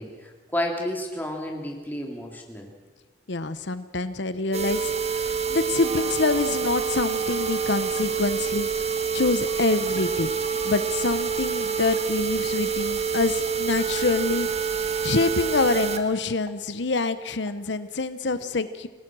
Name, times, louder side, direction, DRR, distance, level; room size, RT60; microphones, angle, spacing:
voice 1, 0.0-2.7, left 1 dB, 10° left, 1 dB, 3.1 m, -31 dB
voice 2, 3.3-8.7 9.1-10.3 10.6-18.9, left 3 dB, 75° left, 12 dB, 0.9 m, -26 dB
sound 1, 4.5-16.0 16.5-16.6 17.0-17.1 17.5-17.6, right 6 dB, 35° right, 1.6 m, -27 dB
28.0 x 18.0 x 6.2 m, 1.3 s
head